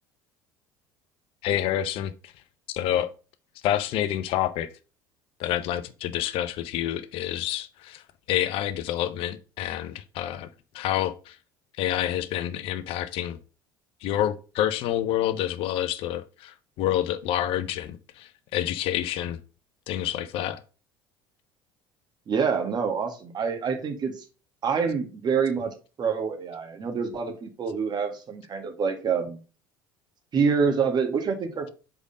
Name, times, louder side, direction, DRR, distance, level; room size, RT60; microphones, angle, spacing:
voice 1, 1.4-2.3 2.7-3.1 3.6-4.7 5.4-8.0 8.3-10.5 10.7-11.4 11.8-13.4 14.0-19.4 19.9-20.6, left 12 dB, 55° left, 0.6 m, -28 dB
voice 2, 22.3-24.2 24.6-29.4 30.3-31.7, right 6 dB, 40° right, 1.7 m, -26 dB
5.1 x 4.9 x 5.3 m
figure-of-eight pair, 65°, 11 cm